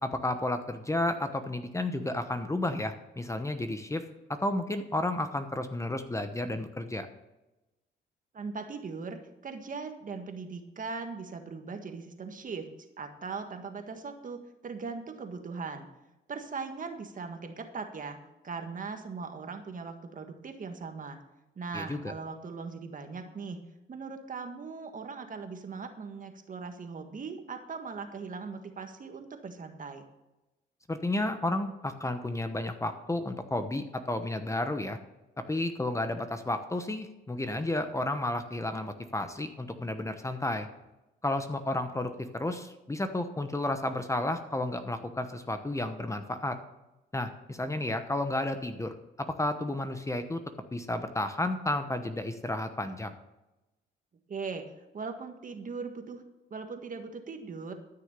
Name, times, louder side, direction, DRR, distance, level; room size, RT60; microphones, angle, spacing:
voice 1, 0.0-4.0 4.3-7.1 21.7-22.1 30.9-35.0 35.5-40.7 41.2-46.6 47.1-50.4 50.7-53.1, left 1 dB, 15° left, 8 dB, 1.0 m, -32 dB
voice 2, 8.3-12.7 13.0-15.9 16.3-18.2 18.4-21.2 21.5-23.6 23.9-30.1 54.3-56.2 56.5-57.7, right 4 dB, 40° right, 6 dB, 1.6 m, -39 dB
13.5 x 6.5 x 6.8 m, 0.98 s
cardioid pair, 90°, 20 cm